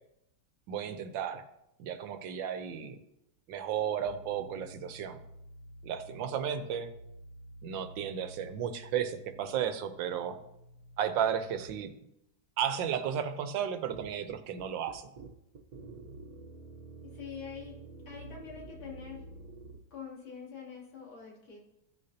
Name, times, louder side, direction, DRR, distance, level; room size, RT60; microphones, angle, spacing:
voice 1, 0.7-1.4 1.8-3.0 3.5-5.2 5.8-6.9 7.6-10.4 11.0-11.9 12.6-15.0, right 8 dB, 75° right, 10 dB, 1.4 m, -33 dB
sound 1, 4.1-11.7, right 1 dB, 65° left, 0.8 m, -51 dB
sound 2, 13.9-19.8, right 3 dB, 60° right, 1.4 m, -48 dB
voice 2, 17.1-17.8 18.1-19.2 19.9-21.6, left 7 dB, 90° left, -6 dB, 3.8 m, -45 dB
15.5 x 6.5 x 2.8 m, 0.84 s
omnidirectional pair, 2.1 m